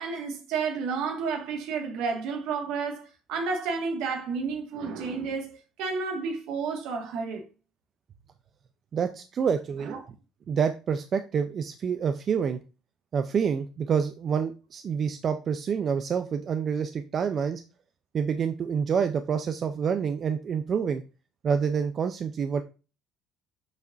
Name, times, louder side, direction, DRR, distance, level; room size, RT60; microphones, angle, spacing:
voice 1, 0.0-7.5 9.8-10.0, right 5 dB, 75° right, 2.0 m, -31 dB
voice 2, 8.9-10.0 10.5-12.6 13.1-17.6 18.1-21.0 21.4-22.6, right 6 dB, 45° right, 0.7 m, -27 dB
7.6 x 5.9 x 2.7 m
supercardioid pair, 90°, 0 cm